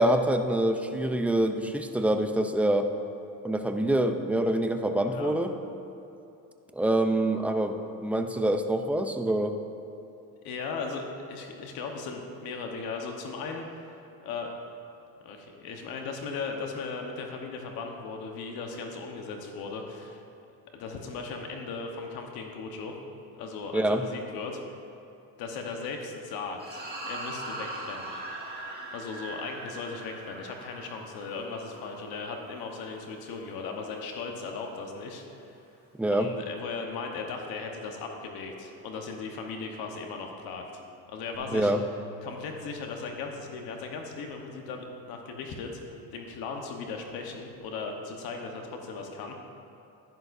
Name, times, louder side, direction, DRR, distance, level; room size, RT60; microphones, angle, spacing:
voice 1, 0.0-2.9 3.4-5.5 6.7-9.5 23.7-24.0 36.0-36.3 41.5-41.8, right 1 dB, 5° right, 6 dB, 0.4 m, -25 dB
voice 2, 4.9-5.3 10.4-13.9 14.2-14.5 15.2-20.2 20.7-23.0 23.3-24.6 25.4-28.1 28.9-35.6 36.1-40.6 41.1-41.7 42.2-49.3, left 4 dB, 80° left, 2 dB, 1.2 m, -37 dB
sound 1, 26.6-33.1, right 1 dB, 25° right, 2.0 m, -41 dB
Bass guitar, 41.3-47.6, left 1 dB, 50° right, 1.7 m, -49 dB
10.5 x 10.5 x 2.6 m, 2.8 s
cardioid pair, 115°, 36 cm